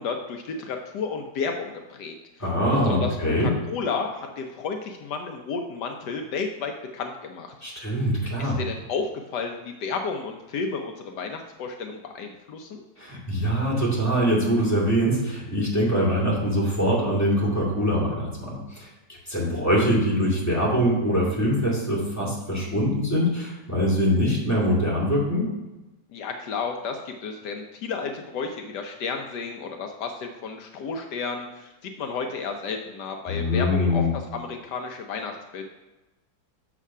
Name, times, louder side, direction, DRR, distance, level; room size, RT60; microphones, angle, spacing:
voice 1, 0.0-2.1 2.8-7.5 8.4-12.8 26.1-35.7, left 5 dB, 75° left, 4 dB, 1.3 m, -32 dB
voice 2, 2.4-3.5 7.6-8.6 13.0-18.9 19.3-25.4 33.3-34.1, equal, 10° left, -5 dB, 2.2 m, -23 dB
6.9 x 4.9 x 5.4 m, 1.1 s
omnidirectional pair, 1.8 m